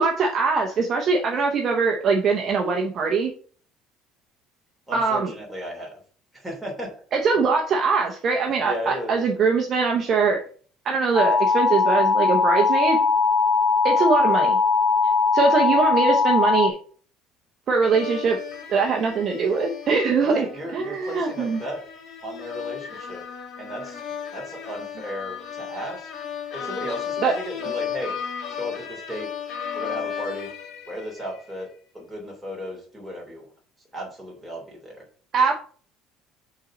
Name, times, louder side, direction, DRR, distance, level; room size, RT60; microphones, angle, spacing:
voice 1, 0.0-3.3 4.9-5.3 7.1-10.4 10.8-13.0 13.8-14.6 15.3-16.7 17.7-18.4 18.7-20.5 20.7-21.6 27.2-27.3 35.3-35.5, right 4 dB, 35° right, 2 dB, 0.9 m, -22 dB
voice 2, 4.9-6.0 6.3-6.9 8.6-9.2 20.2-21.8 22.2-23.2 23.6-24.0 24.3-26.1 26.5-28.2 28.5-29.3 29.7-30.5 30.8-31.7 31.9-33.4 33.9-35.0, equal, 5° right, -2 dB, 3.2 m, -35 dB
sound 1, 11.1-16.7, left 4 dB, 20° left, 0.9 m, -20 dB
sound 2, 17.8-31.5, left 8 dB, 50° left, 1.6 m, -35 dB
6.2 x 3.9 x 6.1 m, 0.43 s
cardioid pair, 155°, 0 cm